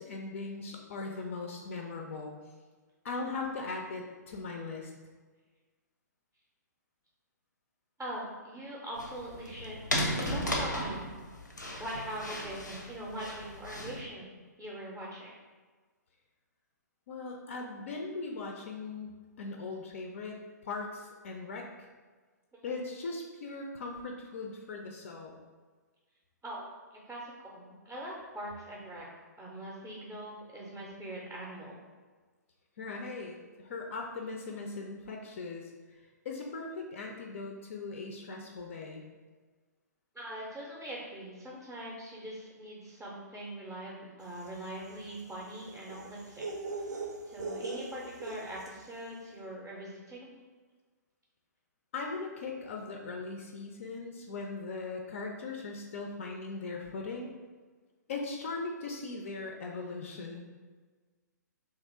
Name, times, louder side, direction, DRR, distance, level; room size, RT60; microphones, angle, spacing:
voice 1, 0.0-2.3 3.0-4.9 17.1-21.9 22.6-25.4 32.8-39.1 51.9-57.3 58.1-60.4, left 3 dB, 45° left, 1 dB, 0.4 m, -39 dB
voice 2, 8.0-11.2 11.8-14.3 14.6-15.3 22.6-22.8 26.4-26.7 26.9-29.0 29.4-31.8 40.1-46.5 47.2-50.3, right 1 dB, 10° right, -4 dB, 0.5 m, -42 dB
sound 1, 9.0-14.0, equal, 85° left, 0.6 m, -35 dB
sound 2, 44.3-48.9, right 3 dB, 70° right, 0.5 m, -41 dB
3.0 x 2.4 x 4.2 m, 1.4 s
figure-of-eight pair, 120°, 10 cm